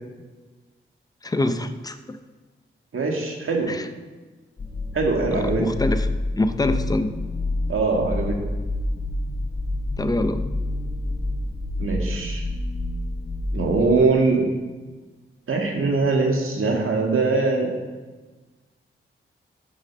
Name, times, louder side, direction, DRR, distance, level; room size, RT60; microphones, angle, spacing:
voice 1, 1.2-2.2 3.7-3.9 5.3-6.1 6.3-7.1 10.0-10.4, left 2 dB, 15° left, 9 dB, 0.5 m, -25 dB
voice 2, 2.9-3.7 4.9-5.6 7.7-8.3 11.8-12.4 13.5-14.5 15.5-17.7, right 3 dB, 80° right, 1 dB, 1.8 m, -22 dB
sound 1, 4.6-13.9, left 2 dB, 45° left, 3.2 m, -28 dB
8.7 x 6.7 x 6.3 m, 1.3 s
wide cardioid pair, 140°, 21 cm